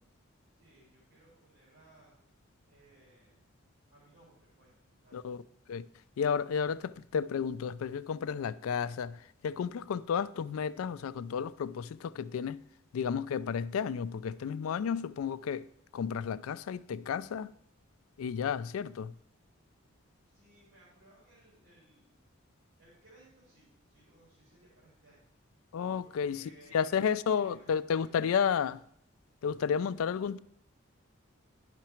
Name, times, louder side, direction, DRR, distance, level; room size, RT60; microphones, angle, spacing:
voice 1, 0.6-2.1 2.7-3.4 3.9-5.2 20.3-22.1 22.8-25.3 26.0-28.3, right 2 dB, 75° right, 3.3 m, -61 dB
voice 2, 5.1-5.4 5.7-5.8 6.2-12.6 12.9-15.7 15.9-17.5 18.2-19.1 25.7-28.8 29.4-30.4, left 7 dB, 90° left, 0.3 m, -32 dB
10.5 x 5.8 x 4.4 m
head